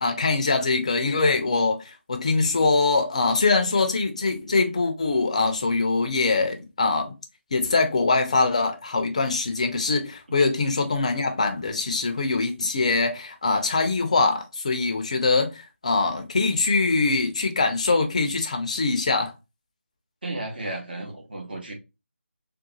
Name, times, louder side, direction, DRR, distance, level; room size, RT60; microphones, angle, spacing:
voice 1, 0.0-7.1 7.5-19.3, left 3 dB, 30° left, 0.5 m, -23 dB
voice 2, 20.2-21.7, right 2 dB, 45° right, 1.1 m, -33 dB
3.7 x 2.3 x 2.7 m
figure-of-eight pair, 160°, 7 cm